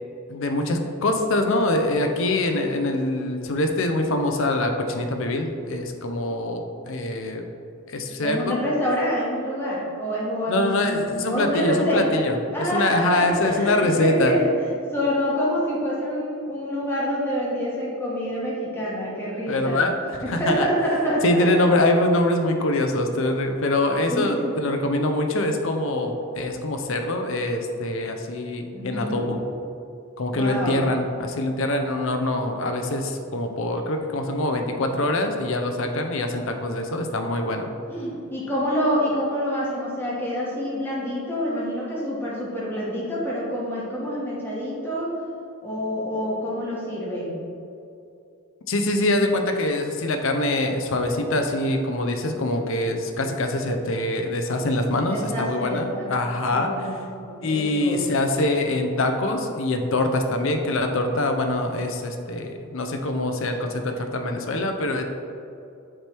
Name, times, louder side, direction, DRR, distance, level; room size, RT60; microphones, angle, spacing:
voice 1, 0.3-7.4 7.9-8.7 10.5-14.4 19.5-20.0 20.3-20.7 21.2-29.4 30.2-37.7 48.7-56.7 57.4-65.0, left 1 dB, 60° left, 5 dB, 0.6 m, -24 dB
voice 2, 8.2-19.8 20.2-21.6 24.1-24.5 28.7-29.3 30.3-30.8 37.9-45.2 45.6-47.4 55.0-56.1 56.5-56.9 57.2-58.1, equal, 10° left, -7 dB, 1.4 m, -27 dB
7.5 x 3.4 x 4.5 m, 2.6 s
head